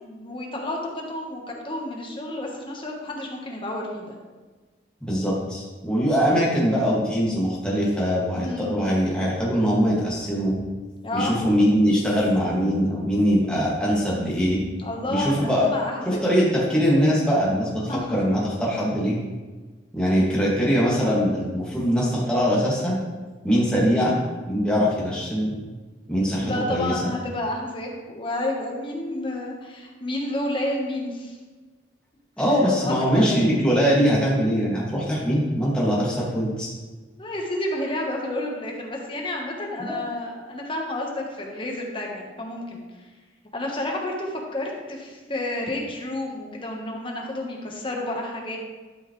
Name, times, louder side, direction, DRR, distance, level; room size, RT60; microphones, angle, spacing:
voice 1, 0.0-4.1 8.4-8.8 11.0-11.3 14.8-16.2 17.9-18.2 26.4-31.4 32.6-33.5 37.2-42.8 43.5-48.6, left 1 dB, 30° left, -1 dB, 1.3 m, -30 dB
voice 2, 5.0-10.5 11.1-14.6 15.1-15.7 16.1-17.8 18.1-19.2 19.9-23.0 23.4-24.2 24.5-25.5 26.1-27.0 32.4-36.7 39.8-40.0, equal, 5° left, -7 dB, 2.1 m, -22 dB
12.5 x 5.5 x 3.2 m, 1.3 s
head